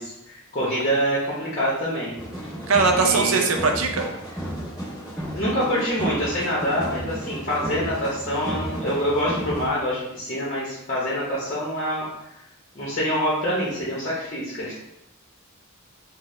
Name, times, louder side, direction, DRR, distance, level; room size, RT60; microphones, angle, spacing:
voice 1, 0.0-2.2 2.9-3.4 5.3-12.1 12.7-14.7, equal, 35° left, -6 dB, 0.8 m, -26 dB
sound 1, 2.2-9.7, equal, 5° right, 1.4 m, -33 dB
voice 2, 2.7-4.1, right 4 dB, 70° right, 3 dB, 0.5 m, -20 dB
3.9 x 2.0 x 3.1 m, 0.85 s
head